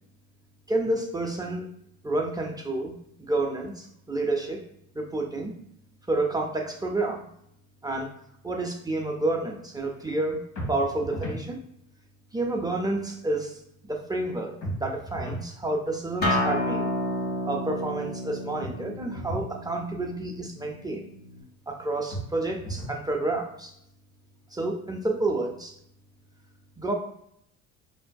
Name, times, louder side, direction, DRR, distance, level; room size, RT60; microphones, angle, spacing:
voice 1, 0.7-1.7 2.0-2.9 3.2-4.6 4.9-5.6 6.1-7.3 7.8-8.1 8.4-10.4 10.7-11.6 12.3-16.9 17.5-21.0 21.7-23.7 24.5-25.8 26.8-26.9, right 2 dB, 10° right, 1 dB, 0.4 m, -29 dB
sound 1, 10.6-11.5 14.6-15.5 18.6-19.5 22.1-23.0, right 1 dB, 55° left, 1.2 m, -35 dB
Acoustic guitar, 16.2-21.4, left 1 dB, 30° left, 1.5 m, -30 dB
5.3 x 2.6 x 2.2 m, 0.73 s
cardioid pair, 125°, 32 cm